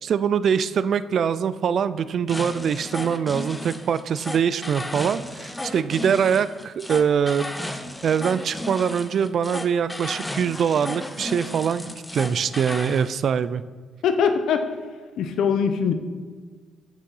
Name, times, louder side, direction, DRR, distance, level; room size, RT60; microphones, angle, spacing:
voice 1, 0.0-7.5 8.0-11.9 12.1-13.6, right 7 dB, 60° right, 15 dB, 0.3 m, -23 dB
sound 1, 2.3-13.1, left 1 dB, 10° left, 0.6 m, -34 dB
voice 2, 14.0-14.6 15.2-15.9, left 6 dB, 75° left, 8 dB, 0.7 m, -21 dB
6.7 x 6.2 x 5.5 m, 1.5 s
cardioid pair, 90°, 0 cm